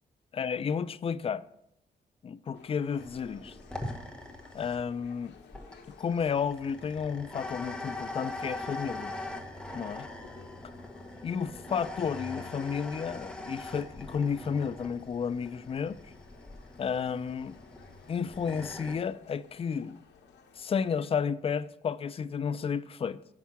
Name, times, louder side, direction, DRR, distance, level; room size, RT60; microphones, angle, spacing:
voice 1, 0.3-1.4 2.2-3.6 4.5-5.3 6.0-9.1 9.7-10.1 11.2-16.0 16.8-17.6 18.1-20.0 20.6-23.2, left 6 dB, 35° left, 0.4 m, -32 dB
sound 1, 2.5-21.1, left 6 dB, 90° left, 0.9 m, -57 dB
sound 2, 3.0-19.0, left 2 dB, 5° left, 1.1 m, -42 dB
7.2 x 5.9 x 5.6 m
cardioid pair, 100°, 18 cm